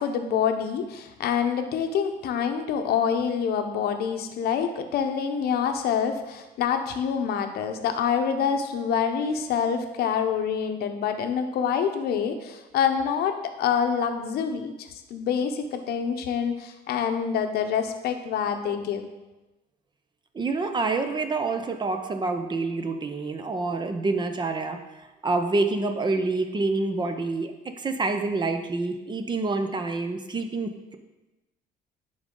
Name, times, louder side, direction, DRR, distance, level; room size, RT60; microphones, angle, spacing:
voice 1, 0.0-19.1, left 7 dB, 70° left, 6 dB, 0.8 m, -26 dB
voice 2, 20.3-27.5 27.8-31.0, right 3 dB, 25° right, 7 dB, 0.7 m, -27 dB
10.0 x 3.9 x 3.8 m, 1.1 s
cardioid pair, 110°, 17 cm